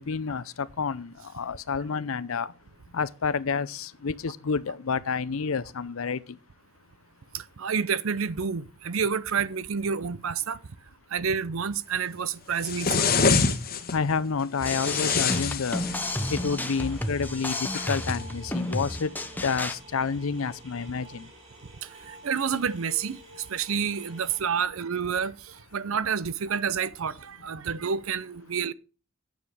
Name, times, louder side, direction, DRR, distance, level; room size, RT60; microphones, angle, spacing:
voice 1, 0.0-2.5 2.9-6.4 13.8-15.8 16.3-19.1 19.4-21.3, left 5 dB, 75° left, 0.6 m, -29 dB
voice 2, 7.3-10.6 11.1-13.1 16.5-16.6 22.2-23.2 23.5-25.3 25.7-28.7, right 6 dB, 75° right, 0.6 m, -29 dB
sound 1, 12.6-13.9 14.6-16.4 17.5-18.2, left 5 dB, 45° left, 1.2 m, -26 dB
sound 2, 14.6-19.8, left 1 dB, 10° left, 0.8 m, -32 dB
sound 3, 15.7-24.4, right 1 dB, 30° right, 4.0 m, -49 dB
9.3 x 7.3 x 4.8 m
head